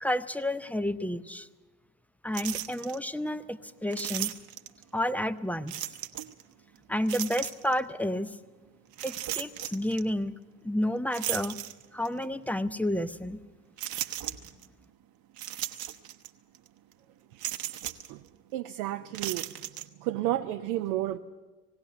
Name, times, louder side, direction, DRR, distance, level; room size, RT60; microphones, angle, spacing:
voice 1, 0.0-1.5 2.2-4.3 4.9-5.7 6.9-8.4 9.0-10.3 10.6-11.6 11.9-13.4, left 1 dB, 5° left, 12 dB, 0.6 m, -30 dB
sound 1, 2.3-3.0 3.9-4.8 5.7-6.4 7.1-7.8 8.9-10.0 11.1-12.2 12.7-12.8 13.8-14.7 15.4-16.3 16.5-16.7 17.4-18.1 19.1-19.9, right 12 dB, 50° right, 1.0 m, -36 dB
voice 2, 18.5-19.5 20.0-21.2, right 14 dB, 70° right, 7 dB, 0.7 m, -31 dB
18.5 x 17.0 x 8.1 m, 1.3 s
figure-of-eight pair, 50°, 46 cm